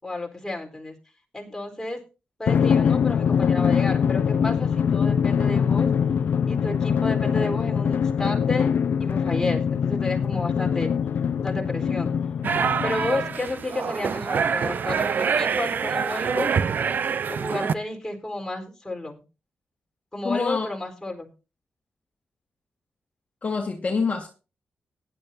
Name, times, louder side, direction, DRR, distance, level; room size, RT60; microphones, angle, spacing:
voice 1, 0.0-1.0 1.3-2.0 2.4-5.9 6.5-8.7 9.0-10.9 11.4-12.1 12.8-16.5 17.3-19.2 20.1-21.3, left 2 dB, 10° left, 1 dB, 4.1 m, -31 dB
Drum, 2.5-13.5, left 7 dB, 65° left, 0.6 m, -23 dB
sound 1, 12.4-17.7, right 6 dB, 60° right, 0.6 m, -25 dB
voice 2, 20.2-20.7 23.4-24.3, left 4 dB, 40° left, 3 dB, 1.7 m, -26 dB
18.5 x 10.5 x 2.7 m, 0.32 s
cardioid pair, 80°, 4 cm